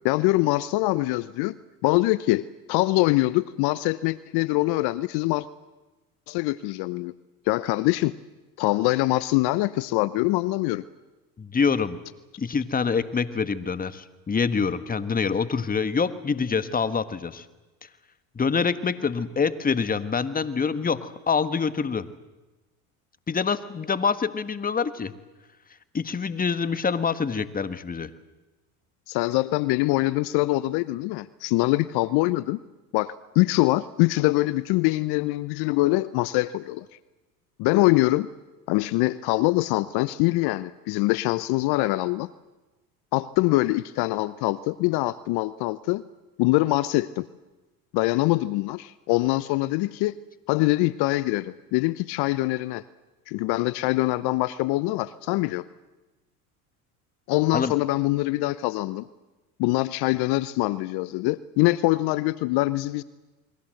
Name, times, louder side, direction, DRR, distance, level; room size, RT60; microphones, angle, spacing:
voice 1, 0.0-1.5 1.8-5.5 6.3-7.1 7.5-8.1 8.6-10.8 29.1-32.6 32.9-36.8 37.6-38.3 38.7-42.3 43.1-46.0 46.4-47.3 47.9-50.1 50.5-52.8 53.3-55.6 57.3-59.1 59.6-63.0, left 19 dB, 60° left, 17 dB, 0.9 m, -24 dB
voice 2, 11.4-12.0 12.4-17.4 18.3-22.1 23.3-25.1 25.9-28.1 57.5-57.7, left 5 dB, 20° left, 13 dB, 1.5 m, -26 dB
28.5 x 22.0 x 7.8 m, 1.1 s
hypercardioid pair, 90°, 45 cm